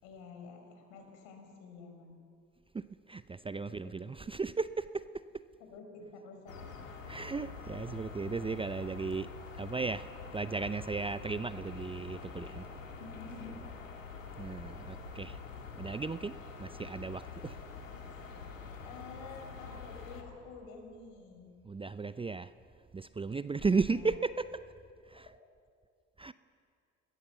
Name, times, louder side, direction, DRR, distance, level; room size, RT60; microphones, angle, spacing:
voice 1, 0.0-2.2 3.6-4.0 5.6-7.0 7.7-7.9 13.0-13.7 16.4-16.5 18.8-21.5 23.6-24.2 25.1-25.2, left 4 dB, 65° left, 4 dB, 5.3 m, -50 dB
voice 2, 2.7-5.0 7.1-9.3 9.6-12.6 14.4-15.4 15.8-16.3 16.6-17.6 21.6-22.5 22.9-24.6 25.1-25.3 26.2-26.3, right 4 dB, 15° right, 14 dB, 0.6 m, -35 dB
sound 1, 6.5-20.2, left 5 dB, 85° left, 2.1 m, -46 dB
28.5 x 21.5 x 7.0 m, 2.3 s
figure-of-eight pair, 60°, 38 cm